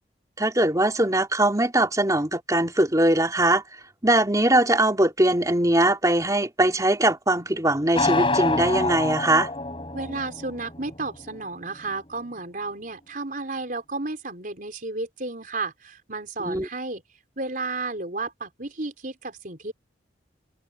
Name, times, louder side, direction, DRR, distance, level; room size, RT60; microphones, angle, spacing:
voice 1, 0.4-3.6 4.0-9.5 16.4-16.7, right 1 dB, 20° right, 3.3 m, -21 dB
sound 1, 8.0-11.9, left 3 dB, 30° left, 7.0 m, -27 dB
voice 2, 9.9-17.0 17.4-19.7, right 3 dB, 50° right, 4.6 m, -32 dB
head